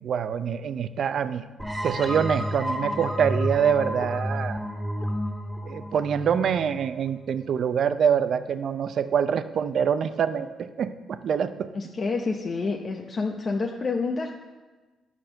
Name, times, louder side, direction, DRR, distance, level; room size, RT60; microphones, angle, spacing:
voice 1, 0.0-1.4 1.8-4.6 5.7-11.7, right 7 dB, 60° right, 11 dB, 0.6 m, -25 dB
sound 1, 1.6-7.1, equal, 5° right, 2.1 m, -30 dB
voice 2, 11.7-14.3, left 4 dB, 40° left, 1 dB, 0.8 m, -28 dB
10.5 x 6.2 x 6.6 m, 1.3 s
cardioid pair, 90°, 0 cm